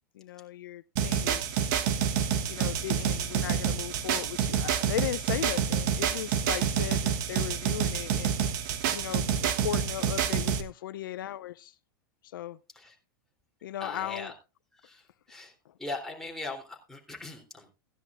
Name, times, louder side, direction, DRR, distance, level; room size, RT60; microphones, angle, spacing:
voice 1, 0.1-1.6 2.5-8.6 8.9-11.7 12.3-12.6 13.6-14.3, left 12 dB, 80° left, 15 dB, 0.6 m, -37 dB
sound 1, 1.0-10.6, right 8 dB, 60° right, 1.3 m, -28 dB
voice 2, 13.8-14.3 14.8-15.0 15.3-15.5 15.8-17.7, left 2 dB, 5° left, 0 dB, 3.4 m, -39 dB
16.5 x 10.5 x 2.5 m, 0.29 s
hypercardioid pair, 110°, 11 cm